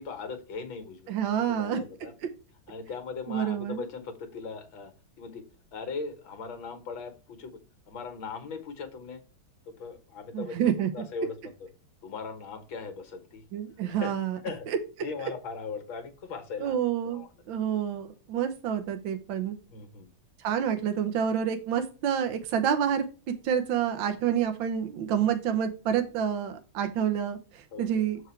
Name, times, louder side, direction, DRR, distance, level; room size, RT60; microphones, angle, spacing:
voice 1, 0.0-2.1 2.7-4.9 5.2-5.4 5.7-7.6 7.9-9.2 9.8-11.7 12.0-13.5 14.0-14.1 14.4-14.7 15.0-16.8 17.0-17.4 19.7-20.1 27.7-28.0, left 5 dB, 75° left, 7 dB, 2.1 m, -39 dB
voice 2, 1.1-1.8 3.3-3.8 10.3-10.9 13.5-14.4 14.7-14.8 16.6-19.5 20.4-23.0 23.4-28.2, right 9 dB, 75° right, 7 dB, 1.6 m, -28 dB
7.1 x 4.7 x 4.5 m, 0.33 s
omnidirectional pair, 2.2 m